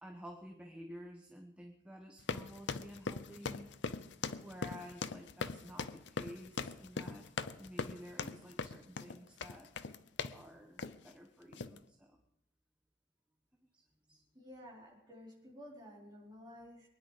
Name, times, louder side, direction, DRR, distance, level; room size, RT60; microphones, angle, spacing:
voice 1, 0.0-3.7 4.4-7.3 7.5-9.7 10.3-12.2 13.7-13.8 14.1-14.2, equal, 5° right, 3 dB, 1.1 m, -51 dB
sound 1, 2.2-10.4 10.8-11.1 11.5-11.8, left 4 dB, 65° left, 0.7 m, -41 dB
voice 2, 14.3-16.9, equal, 20° right, -4 dB, 4.4 m, -53 dB
23.5 x 10.0 x 5.0 m, 0.86 s
head